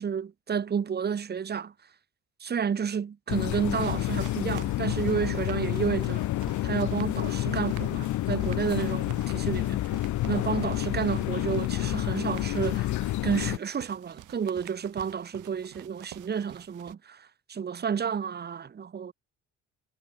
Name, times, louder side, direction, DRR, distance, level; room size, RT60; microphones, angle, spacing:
voice 1, 0.0-1.7 2.4-6.2 6.6-9.9 10.3-13.0 13.2-19.1, right 7 dB, 35° right, 0.9 m, -31 dB
sound 1, 3.3-13.6, left 16 dB, 75° left, 0.7 m, -29 dB
sound 2, 3.8-16.9, right 15 dB, 85° right, 6.3 m, -49 dB
cardioid pair, 90°, 30 cm